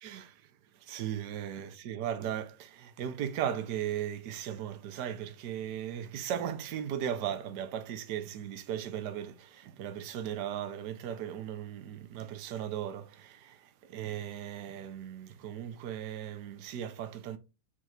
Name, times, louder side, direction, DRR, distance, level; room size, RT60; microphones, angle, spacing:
voice 1, 0.0-0.4 0.8-17.4, right 10 dB, 45° right, 0.6 m, -37 dB
3.6 x 2.4 x 4.4 m
figure-of-eight pair, 90°, 0 cm